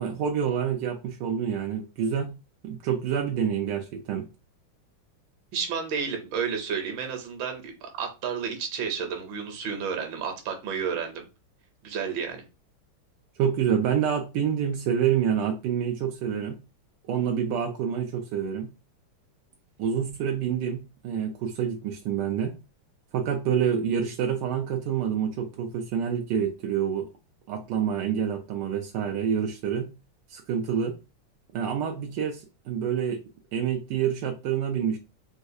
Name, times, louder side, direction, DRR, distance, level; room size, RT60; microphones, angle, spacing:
voice 1, 0.0-2.3 2.6-4.3 13.4-16.6 17.1-18.7 19.8-22.5 23.1-27.1 27.5-29.9 30.3-30.9 31.5-32.4 32.7-33.2 33.5-35.0, right 8 dB, 90° right, 3 dB, 0.9 m, -27 dB
voice 2, 5.5-11.2 11.8-12.4, right 6 dB, 70° right, 3 dB, 1.4 m, -31 dB
4.0 x 2.3 x 2.6 m, 0.29 s
omnidirectional pair, 2.4 m